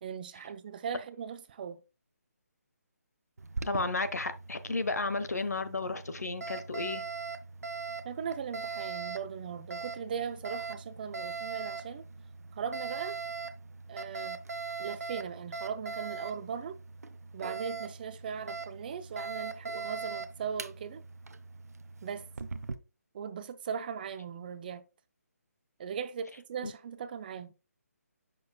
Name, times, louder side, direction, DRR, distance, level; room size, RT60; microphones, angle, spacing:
voice 1, 0.0-1.8 8.0-12.0 12.6-13.1 13.9-14.4 14.8-16.8 17.3-21.0 22.0-22.3 23.1-24.8 25.8-27.5, right 7 dB, 35° right, 0.6 m, -38 dB
Alarm, 3.4-22.8, right 4 dB, 70° right, 0.7 m, -41 dB
voice 2, 3.6-7.0 26.6-26.7, left 3 dB, 75° left, 1.0 m, -33 dB
7.2 x 6.2 x 2.3 m
figure-of-eight pair, 150°, 9 cm